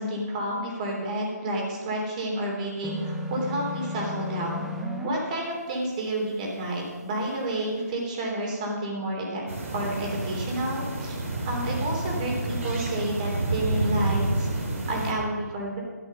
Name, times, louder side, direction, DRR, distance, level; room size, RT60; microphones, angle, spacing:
voice 1, 0.0-4.7 5.0-9.4 9.7-11.2 11.4-15.8, right 1 dB, 25° right, -1 dB, 3.3 m, -30 dB
sound 1, 2.8-5.1, left 1 dB, 5° right, 0.8 m, -33 dB
sound 2, 9.5-15.1, right 2 dB, 50° right, 2.9 m, -29 dB
13.5 x 9.6 x 5.5 m, 1.4 s
figure-of-eight pair, 150°, 9 cm